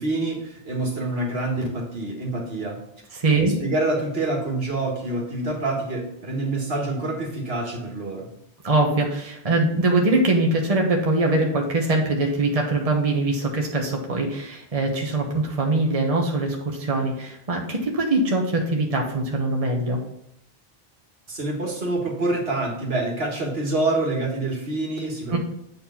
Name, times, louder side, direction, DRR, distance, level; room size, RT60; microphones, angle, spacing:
voice 1, 0.0-2.8 3.3-8.3 21.3-25.4, right 2 dB, 70° right, 0 dB, 2.0 m, -26 dB
voice 2, 3.1-3.5 8.6-20.0 25.3-25.4, right 2 dB, 35° right, 1 dB, 1.2 m, -22 dB
8.3 x 4.4 x 5.7 m, 0.78 s
omnidirectional pair, 1.0 m